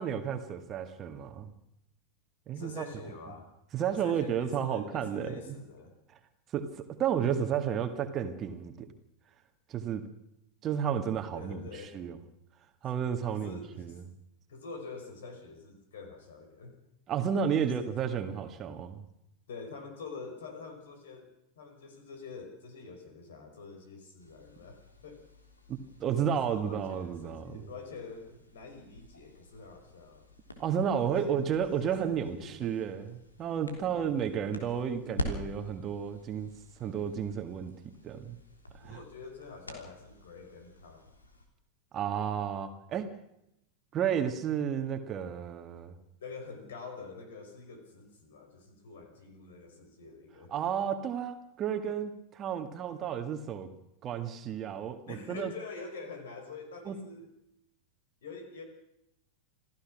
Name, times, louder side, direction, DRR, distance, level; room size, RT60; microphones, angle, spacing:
voice 1, 0.0-1.5 2.5-2.8 3.7-5.3 6.5-8.9 9.7-10.0 10.6-12.2 12.8-14.0 17.1-19.0 25.7-27.6 30.6-33.0 33.4-36.5 36.8-37.7 38.0-38.4 38.8-38.9 41.9-43.1 43.9-45.9 50.5-53.7 54.0-55.5 56.9-57.0, right 8 dB, 30° right, 7 dB, 1.9 m, -32 dB
voice 2, 2.5-3.5 3.9-6.0 11.3-12.0 13.0-14.0 14.5-16.8 17.6-17.9 19.5-25.3 26.3-30.3 31.0-31.4 31.8-32.8 33.6-34.2 38.8-41.1 46.2-50.5 55.1-57.3 58.2-58.6, left 4 dB, 60° left, 6 dB, 5.3 m, -46 dB
sound 1, 24.2-41.5, left 1 dB, 80° left, 3.4 m, -46 dB
27.5 x 15.5 x 6.2 m, 0.82 s
figure-of-eight pair, 90°, 0 cm